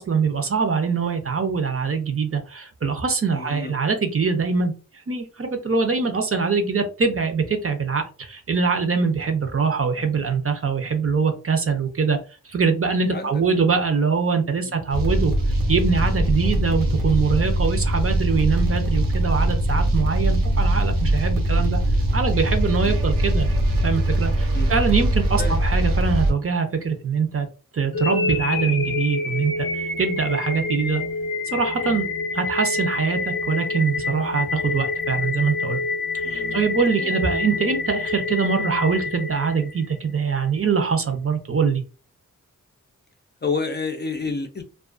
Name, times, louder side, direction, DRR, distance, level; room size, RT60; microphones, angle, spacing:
voice 1, 0.0-4.7 5.1-12.2 12.4-15.3 15.7-21.8 22.1-23.5 23.8-27.5 27.7-31.0 31.5-32.1 32.3-35.8 36.1-41.8, right 5 dB, 45° right, 6 dB, 0.6 m, -23 dB
voice 2, 3.3-3.7 13.1-13.4 14.6-14.8 16.4-16.6 22.8-23.0 24.5-24.7 25.4-25.6 36.2-36.6 37.0-37.2 43.4-44.6, left 4 dB, 30° left, 5 dB, 0.4 m, -30 dB
sound 1, 14.9-26.3, right 1 dB, 85° right, 0.6 m, -21 dB
sound 2, 27.9-40.0, left 3 dB, 90° left, 0.6 m, -27 dB
2.3 x 2.3 x 2.4 m, 0.34 s
cardioid pair, 50°, 33 cm